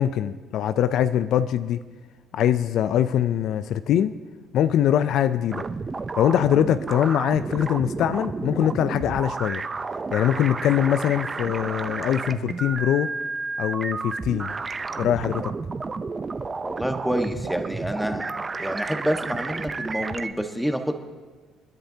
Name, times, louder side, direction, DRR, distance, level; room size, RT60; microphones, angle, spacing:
voice 1, 0.0-1.8 2.3-4.1 4.5-5.6 6.2-9.6 10.1-13.1 13.6-14.5 15.0-15.5, left 10 dB, 70° left, 0.4 m, -22 dB
sound 1, 5.5-20.3, right 4 dB, 30° right, 0.7 m, -31 dB
voice 2, 16.6-21.0, equal, ahead, 1.4 m, -28 dB
29.5 x 10.5 x 2.8 m
supercardioid pair, 80°, 0 cm